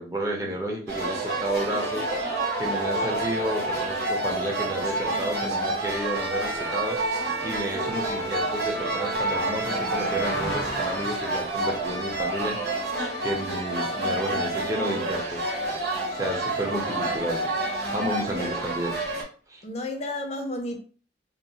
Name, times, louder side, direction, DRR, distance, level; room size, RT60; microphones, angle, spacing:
voice 1, 0.0-2.1 2.6-15.4 16.1-17.5 17.9-19.0 19.5-19.6, right 1 dB, 20° right, 0.6 m, -31 dB
sound 1, 0.9-19.2, right 2 dB, 65° right, 0.8 m, -29 dB
Bowed string instrument, 5.7-11.0, right 3 dB, 85° right, 0.5 m, -36 dB
Car passing by, 6.8-16.3 16.7-16.9, left 1 dB, 85° left, 0.8 m, -41 dB
voice 2, 18.2-18.6 19.6-20.8, left 1 dB, 35° left, 0.5 m, -32 dB
2.9 x 2.0 x 2.7 m
head